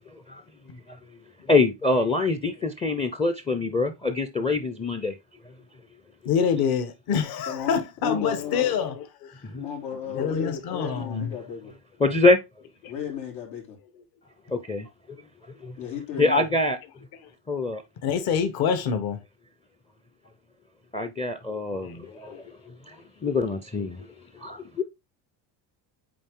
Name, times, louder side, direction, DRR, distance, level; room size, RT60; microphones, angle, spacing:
voice 1, 1.5-5.1 9.4-9.6 12.0-12.4 14.5-15.2 15.6-15.7 16.2-16.8 17.5-17.8 20.9-22.3 23.2-24.0 24.4-24.8, left 3 dB, 15° left, 0.5 m, -24 dB
voice 2, 6.2-9.0 10.1-11.3 18.0-19.2 22.1-22.4, left 7 dB, 55° left, 1.3 m, -26 dB
voice 3, 7.5-8.7 9.6-11.7 12.9-13.8 15.8-16.5, left 8 dB, 85° left, 3.5 m, -33 dB
8.6 x 3.2 x 3.6 m
cardioid pair, 140°, 43 cm